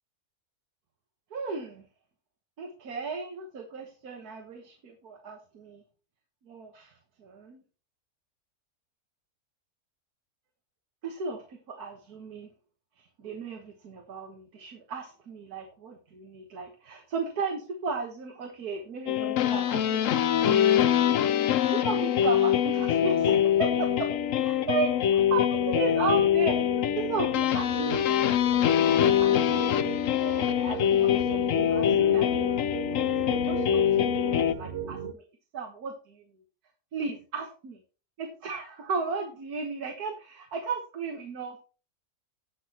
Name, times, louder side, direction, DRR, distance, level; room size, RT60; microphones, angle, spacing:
voice 1, 1.3-1.9 2.6-5.8 6.5-6.9 7.2-7.6 11.0-12.5 13.0-21.0 21.6-24.1 24.4-26.6 26.9-35.2 35.5-36.2 36.9-37.8 38.2-41.6, right 4 dB, 90° right, 4 dB, 1.9 m, -35 dB
sound 1, 19.1-34.5, left 10 dB, 65° left, 1.0 m, -24 dB
sound 2, 22.6-35.1, right 7 dB, 50° right, 1.1 m, -38 dB
18.0 x 6.1 x 2.9 m, 0.35 s
omnidirectional pair, 1.6 m